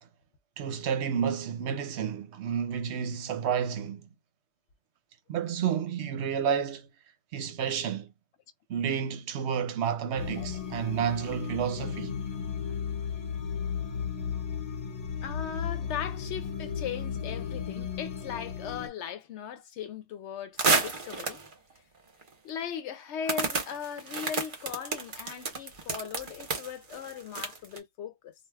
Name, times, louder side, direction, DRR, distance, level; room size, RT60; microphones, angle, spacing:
voice 1, 0.6-4.1 5.3-6.9 7.3-8.1 8.7-12.2, right 7 dB, 75° right, 0.9 m, -30 dB
sound 1, 10.2-18.9, left 7 dB, 45° left, 0.6 m, -35 dB
voice 2, 15.2-21.4 22.4-28.3, left 8 dB, 75° left, 0.8 m, -38 dB
sound 2, 20.6-21.5 22.2-22.3 23.3-27.8, right 4 dB, 50° right, 0.9 m, -30 dB
2.2 x 2.2 x 3.2 m
omnidirectional pair, 1.2 m